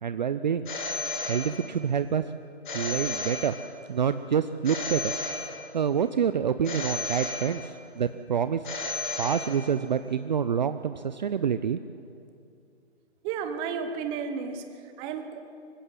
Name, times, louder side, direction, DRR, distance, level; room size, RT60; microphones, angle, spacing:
voice 1, 0.0-0.7 0.9-2.2 2.7-3.5 3.9-5.1 5.5-8.6 9.2-11.8, right 7 dB, 40° right, 12 dB, 0.6 m, -27 dB
Telephone, 0.7-1.9 2.6-3.9 4.6-5.9 6.6-7.9 8.6-9.9, left 3 dB, 45° left, 7.4 m, -34 dB
voice 2, 13.2-14.6 15.0-15.4, right 6 dB, 15° right, 8 dB, 1.0 m, -32 dB
25.0 x 15.5 x 7.7 m, 2.5 s
figure-of-eight pair, 145°, 34 cm